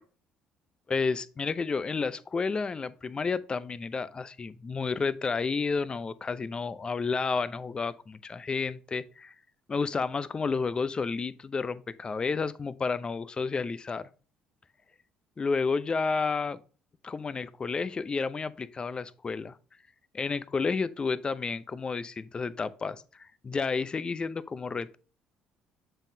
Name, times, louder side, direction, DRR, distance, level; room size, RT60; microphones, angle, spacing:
voice 1, 0.9-9.3 9.7-14.1 15.4-16.6 17.0-19.6 20.1-25.0, left 4 dB, 30° left, 0.5 m, -31 dB
7.1 x 5.5 x 2.7 m
hypercardioid pair, 65°, 3 cm